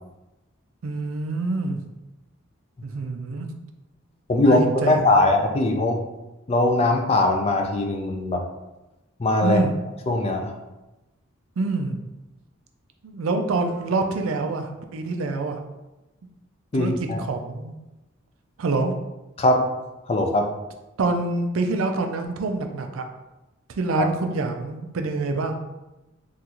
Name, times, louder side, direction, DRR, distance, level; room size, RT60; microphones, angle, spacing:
voice 1, 0.8-1.8 2.8-3.5 4.4-5.2 9.4-9.7 11.6-12.0 13.0-15.6 16.7-16.9 17.2-17.8 18.6-18.9 21.0-23.0 23.7-25.5, right 3 dB, 85° right, 5 dB, 0.4 m, -26 dB
voice 2, 4.3-6.0 6.5-8.4 9.2-9.6 10.1-10.6 16.7-17.2 19.4-19.7 20.1-20.5 24.0-24.1, left 2 dB, 30° left, 3 dB, 0.3 m, -20 dB
3.7 x 2.4 x 2.8 m, 1.0 s
head